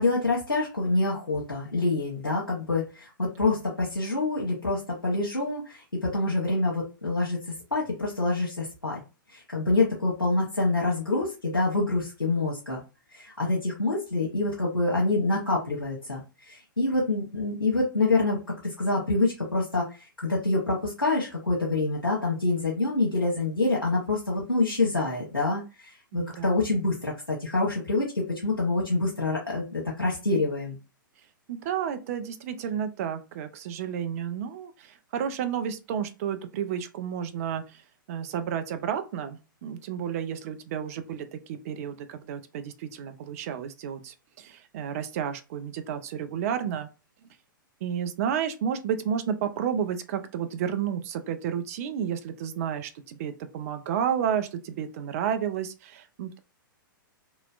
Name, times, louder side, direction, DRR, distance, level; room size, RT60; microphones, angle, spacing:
voice 1, 0.0-7.4 7.7-9.0 9.3-12.8 13.1-30.8, left 2 dB, 85° left, 1.1 m, -26 dB
voice 2, 26.1-26.5 31.5-37.8 38.1-46.9 47.8-56.4, right 8 dB, 45° right, 0.6 m, -31 dB
3.0 x 2.9 x 2.4 m
figure-of-eight pair, 110°, 11 cm